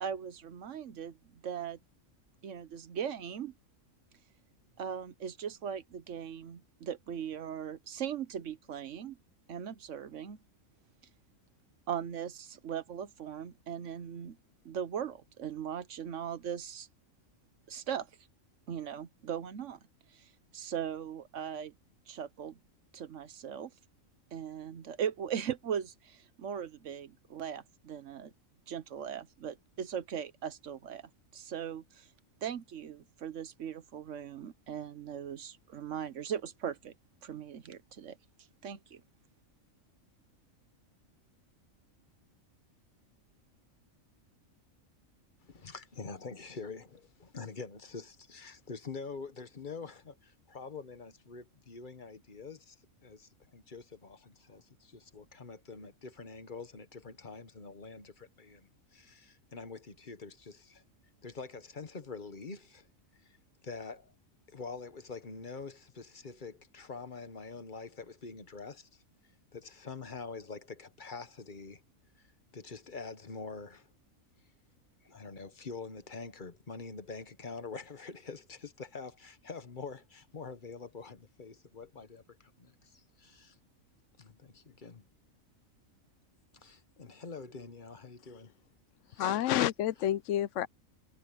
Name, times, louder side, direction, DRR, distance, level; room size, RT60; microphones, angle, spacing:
voice 1, 0.0-1.8 2.4-3.5 4.8-9.2 9.5-10.4 11.9-14.4 14.6-16.9 17.7-18.1 18.7-19.8 20.1-21.7 22.1-22.6 22.9-23.7 24.3-28.3 28.7-32.1 32.4-36.9 37.2-38.2 38.6-39.0, right 8 dB, 65° right, 1.2 m, -39 dB
voice 2, 45.4-52.7 53.0-60.8 61.2-62.9 63.2-63.4 63.6-64.1 64.5-69.0 69.5-71.8 72.2-73.9 75.0-83.6 84.2-85.0 86.5-88.5 89.1-89.5, left 4 dB, 40° left, 1.3 m, -45 dB
voice 3, 89.2-90.7, left 12 dB, 70° left, 0.9 m, -29 dB
omnidirectional pair, 1.4 m